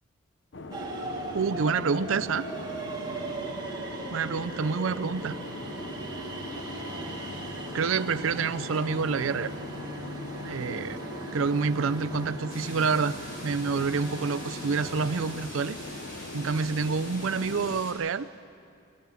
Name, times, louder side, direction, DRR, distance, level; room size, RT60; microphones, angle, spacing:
sound 1, 0.5-17.8, left 2 dB, 60° left, 0.8 m, -41 dB
sound 2, 0.7-15.3, right 2 dB, 20° right, 2.3 m, -39 dB
voice 1, 1.3-2.5 4.1-5.4 7.7-9.5 10.4-11.0 11.3-13.2 13.4-15.8 16.3-18.3, right 5 dB, 80° right, 15 dB, 0.5 m, -28 dB
sound 3, 12.5-17.9, equal, 40° left, 6.7 m, -44 dB
21.5 x 18.5 x 7.2 m, 2.5 s
head